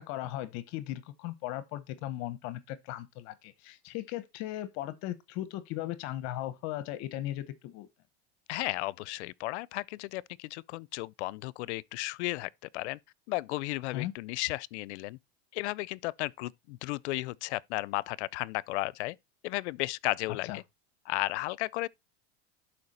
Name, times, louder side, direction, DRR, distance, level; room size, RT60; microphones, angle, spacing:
voice 1, 0.0-7.9 13.9-14.1 20.4-20.6, left 14 dB, 55° left, 0.9 m, -37 dB
voice 2, 8.5-13.0 13.3-15.2 15.5-19.2 19.4-20.6 21.1-21.9, left 20 dB, 80° left, 0.5 m, -34 dB
11.5 x 4.6 x 4.2 m
supercardioid pair, 135°, 33 cm